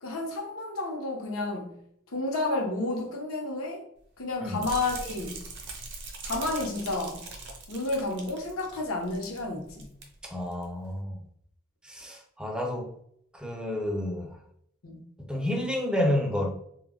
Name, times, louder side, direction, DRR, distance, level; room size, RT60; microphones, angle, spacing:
voice 1, 0.0-1.8 2.1-3.9 4.2-5.4 6.2-7.2 7.7-9.9 14.8-15.0, left 2 dB, 80° left, 0.7 m, -31 dB
sound 1, 4.6-9.4 9.7-10.0 10.5-10.6, right 3 dB, 55° right, 0.6 m, -41 dB
voice 2, 10.2-11.2 11.8-12.9 13.3-14.4 15.2-16.5, left 1 dB, 5° right, 0.4 m, -30 dB
2.2 x 2.1 x 3.5 m
head